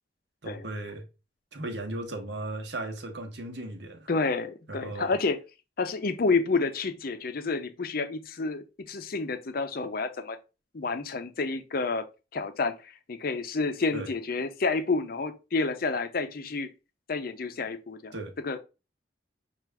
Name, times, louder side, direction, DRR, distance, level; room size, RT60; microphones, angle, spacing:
voice 1, 0.4-1.0 1.5-4.1 4.7-5.1 13.9-14.1 18.1-18.3, right 2 dB, 65° right, 1.0 m, -36 dB
voice 2, 4.1-5.4 5.8-10.4 10.7-12.1 12.3-16.7 17.1-18.1 18.4-18.6, left 4 dB, 50° left, 0.6 m, -29 dB
6.0 x 2.5 x 3.3 m
head